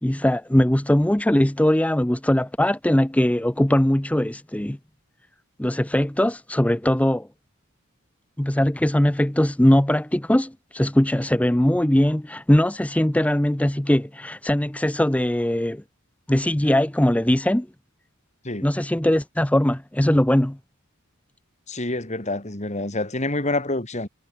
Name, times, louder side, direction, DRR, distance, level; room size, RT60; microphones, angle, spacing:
voice 1, 0.0-4.8 5.6-7.3 8.4-15.8 16.3-17.7 18.6-20.6, left 1 dB, 5° left, 0.6 m, -20 dB
voice 2, 21.7-24.1, left 2 dB, 35° left, 2.9 m, -27 dB
head